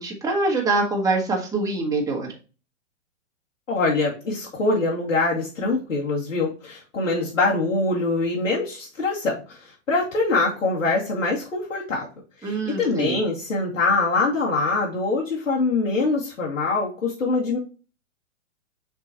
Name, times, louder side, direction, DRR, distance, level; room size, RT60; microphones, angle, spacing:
voice 1, 0.0-2.3 12.4-13.2, right 3 dB, 10° right, -1 dB, 1.7 m, -24 dB
voice 2, 3.7-12.1 12.4-17.6, left 3 dB, 85° left, -5 dB, 2.5 m, -24 dB
6.9 x 4.7 x 3.0 m, 0.34 s
hypercardioid pair, 125°, 38 cm